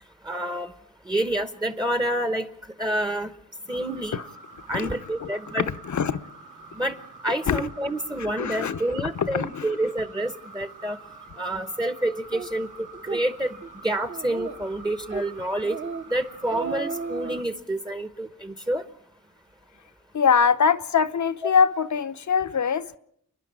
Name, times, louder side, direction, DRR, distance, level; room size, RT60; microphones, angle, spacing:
voice 1, 0.2-0.7 1.1-2.5 2.8-3.3 3.7-4.2 4.7-5.7 6.7-7.0 7.2-11.0 11.4-12.7 13.0-13.5 13.8-15.8 16.1-18.8 21.4-21.5, right 1 dB, 15° right, 0.9 m, -28 dB
sound 1, 3.7-17.4, right 3 dB, 70° right, 2.2 m, -46 dB
voice 2, 4.7-5.3 5.6-6.2 7.5-7.7 8.2-8.8 9.1-9.7 20.1-23.0, left 6 dB, 60° left, 0.9 m, -23 dB
Speech, 12.3-12.5 12.9-13.2 13.6-13.7 14.1-14.7 15.1-15.3 15.6-16.0 16.3-17.4, right 5 dB, 35° right, 1.1 m, -33 dB
29.5 x 11.0 x 8.7 m
wide cardioid pair, 90°, 32 cm